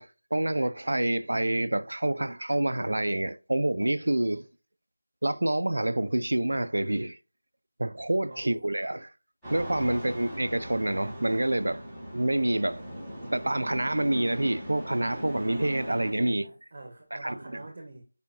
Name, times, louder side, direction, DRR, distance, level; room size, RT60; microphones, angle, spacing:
voice 1, 0.0-4.5 5.2-7.2 7.8-9.1 9.5-11.8 12.1-12.8 13.3-16.4 17.1-17.3, right 1 dB, 75° right, 0.6 m, -27 dB
voice 2, 8.3-8.7 9.8-10.1 15.9-18.0, right 2 dB, 40° right, 1.3 m, -46 dB
sound 1, 9.4-16.1, equal, 5° left, 3.2 m, -40 dB
9.2 x 5.1 x 2.7 m
figure-of-eight pair, 170°, 0 cm